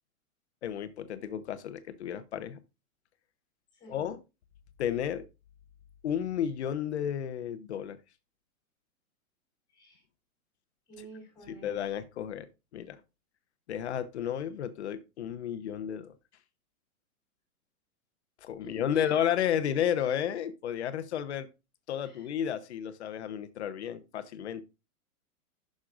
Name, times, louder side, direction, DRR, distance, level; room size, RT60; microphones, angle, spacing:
voice 1, 0.6-2.6 3.9-4.2 4.8-5.2 6.0-8.0 11.5-12.5 12.7-13.0 13.7-16.1 18.4-21.5 21.9-24.6, left 9 dB, 50° left, 0.8 m, -32 dB
voice 2, 10.9-11.7 18.6-19.1 22.0-22.3, right 1 dB, 10° left, 3.3 m, -46 dB
9.9 x 6.4 x 2.5 m
hypercardioid pair, 175°, 43 cm